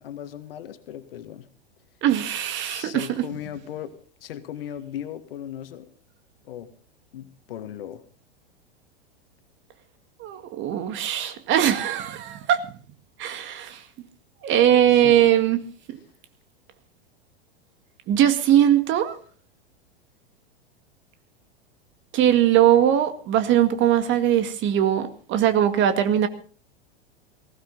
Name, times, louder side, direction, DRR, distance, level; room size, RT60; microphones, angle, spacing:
voice 1, 0.0-1.5 2.6-5.9 6.4-6.7 7.1-8.0 13.7-13.8 14.9-15.2, left 10 dB, 65° left, 1.9 m, -37 dB
voice 2, 2.0-3.3 10.2-12.6 13.2-13.8 14.4-15.6 15.9-16.0 18.1-19.2 22.1-26.3, right 11 dB, 40° right, 2.0 m, -20 dB
18.5 x 16.0 x 4.0 m
hypercardioid pair, 95°, 31 cm